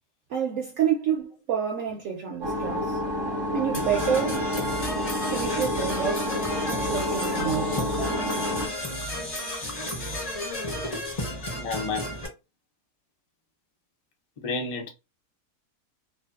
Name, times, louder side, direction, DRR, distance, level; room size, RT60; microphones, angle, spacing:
voice 1, 0.3-3.0 3.5-4.4 5.3-6.3 6.7-7.8, right 8 dB, 65° right, 0.9 m, -28 dB
sound 1, 2.4-8.7, left 1 dB, 40° right, 0.3 m, -29 dB
Percussion / Brass instrument, 3.7-12.3, left 1 dB, 35° left, 0.7 m, -32 dB
voice 2, 11.5-12.1 14.4-14.9, left 3 dB, 65° left, 0.3 m, -31 dB
2.6 x 2.5 x 2.4 m
omnidirectional pair, 1.6 m